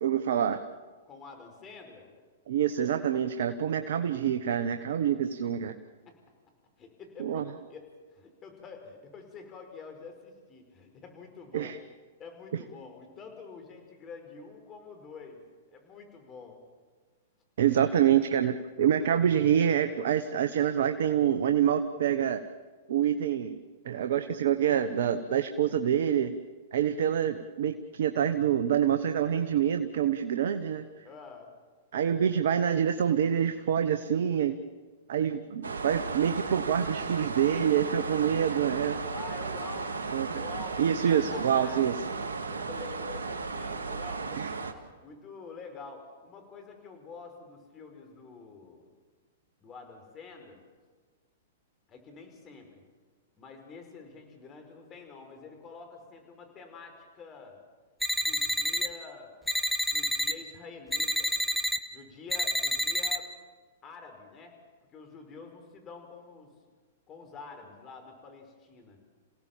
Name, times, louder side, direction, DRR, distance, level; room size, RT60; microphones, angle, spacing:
voice 1, 0.0-0.6 2.5-5.8 7.2-7.4 11.5-11.8 17.6-22.4 22.9-23.6 23.8-26.3 26.7-30.9 31.9-34.6 35.1-39.0 40.1-40.4 40.8-41.9 44.4-44.5, right 9 dB, 65° right, 9 dB, 1.1 m, -26 dB
voice 2, 1.1-2.1 6.1-6.2 6.8-11.7 12.2-15.4 15.7-16.6 17.7-18.0 31.0-31.5 39.1-41.8 42.5-44.4 44.8-48.9 49.6-50.6 51.9-52.8 53.3-57.6 58.2-59.3 59.9-61.4 61.9-63.3 63.8-64.5 64.9-66.5 67.1-69.0, left 4 dB, 30° left, 4 dB, 5.2 m, -47 dB
sound 1, 35.6-44.7, right 4 dB, 80° right, 2.1 m, -35 dB
sound 2, 58.0-58.9 59.5-60.3 60.9-61.8 62.3-63.2, equal, ahead, 1.3 m, -28 dB
28.0 x 17.0 x 7.4 m, 1.4 s
hypercardioid pair, 115°, 0 cm